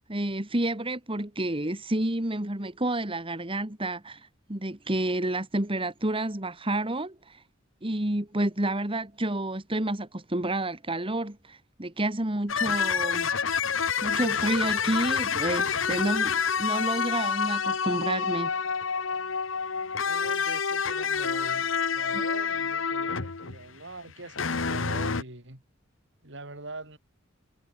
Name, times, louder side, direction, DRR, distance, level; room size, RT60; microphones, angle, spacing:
voice 1, 0.1-7.4 7.8-18.5 22.1-22.2, right 1 dB, 30° right, 2.2 m, -30 dB
sound 1, 12.5-23.7 24.1-25.2, left 6 dB, 80° left, 1.3 m, -28 dB
voice 2, 20.0-21.7 21.9-25.6 26.2-27.0, right 2 dB, 65° right, 7.4 m, -43 dB
head